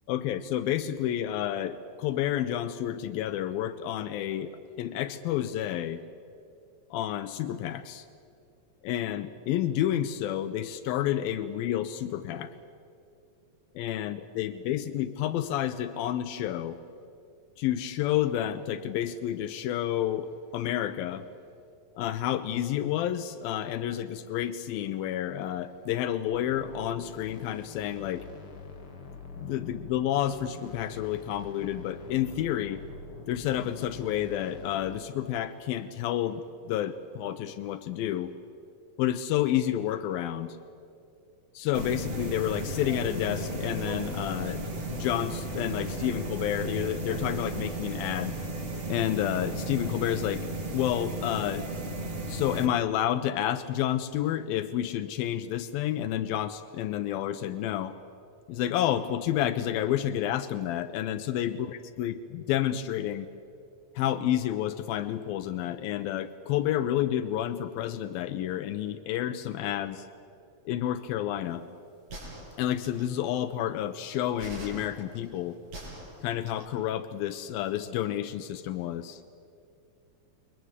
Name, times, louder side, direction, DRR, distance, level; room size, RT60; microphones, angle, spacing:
voice 1, 0.1-6.0 6.9-8.1 8.8-12.5 13.8-16.8 17.6-21.3 22.0-28.3 29.4-32.8 33.3-38.3 39.0-40.6 41.5-44.6 44.9-48.3 48.9-50.5 50.7-51.7 52.3-58.0 58.5-63.3 64.0-70.1 70.7-71.6 72.6-75.6 76.2-79.2, left 11 dB, 85° left, 10 dB, 2.6 m, -30 dB
sound 1, 26.3-35.0, left 4 dB, 40° left, 2.7 m, -46 dB
sound 2, 41.7-52.7, right 1 dB, 40° right, 0.8 m, -34 dB
sound 3, 72.1-73.2 74.4-76.7, right 1 dB, 65° right, 7.6 m, -43 dB
28.5 x 22.5 x 8.1 m, 2.5 s
omnidirectional pair, 4.2 m